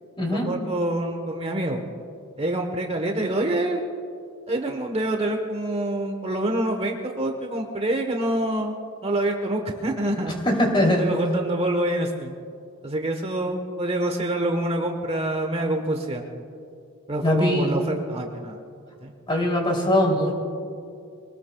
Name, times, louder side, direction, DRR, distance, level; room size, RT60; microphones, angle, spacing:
voice 1, 0.3-1.8 2.4-3.8 4.5-8.7 9.0-10.3 11.0-12.4 12.8-16.2 17.1-18.6 19.0-19.1, right 1 dB, 30° right, 3 dB, 1.1 m, -26 dB
voice 2, 10.4-11.1 17.2-17.7 19.3-20.4, left 1 dB, 25° left, 0 dB, 2.9 m, -21 dB
24.0 x 19.0 x 2.3 m, 2.4 s
head